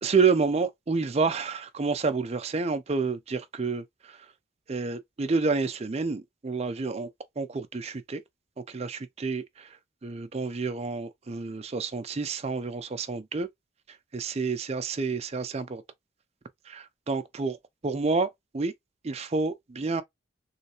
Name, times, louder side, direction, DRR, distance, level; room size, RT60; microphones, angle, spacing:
voice 1, 0.0-4.2 4.7-7.1 7.4-8.2 8.6-9.8 10.0-13.5 14.1-15.8 16.7-17.6 17.8-18.7 19.0-20.0, right 4 dB, 30° right, 0.4 m, -29 dB
3.2 x 3.2 x 2.9 m
head